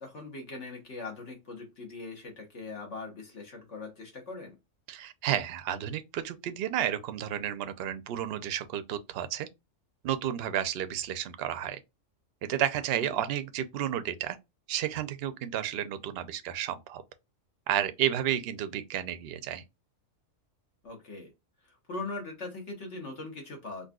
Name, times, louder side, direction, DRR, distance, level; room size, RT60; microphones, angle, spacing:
voice 1, 0.0-4.6 13.0-13.2 20.8-21.3 21.7-23.9, left 3 dB, 60° left, 1.5 m, -41 dB
voice 2, 4.9-9.5 10.0-11.8 12.5-14.4 14.7-17.0 17.7-19.6, right 11 dB, 60° right, 0.7 m, -31 dB
4.0 x 2.5 x 2.2 m
omnidirectional pair, 1.4 m